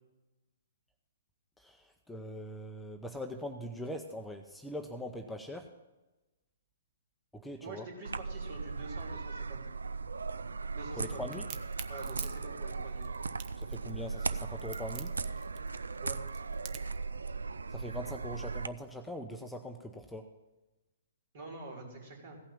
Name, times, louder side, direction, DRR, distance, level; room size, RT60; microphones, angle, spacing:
voice 1, 1.6-5.7 7.3-7.9 11.0-11.4 13.6-15.1 17.7-20.3, equal, 5° left, 4 dB, 0.7 m, -42 dB
voice 2, 7.6-9.7 10.7-11.5 11.9-13.1 16.0-16.2 21.3-22.4, right 3 dB, 55° right, 0 dB, 3.6 m, -46 dB
sound 1, 8.0-18.7, right 4 dB, 80° right, 0.4 m, -38 dB
Crack, 11.3-17.0, right 11 dB, 35° right, 0.7 m, -46 dB
16.0 x 5.8 x 7.2 m, 1.1 s
figure-of-eight pair, 125°, 0 cm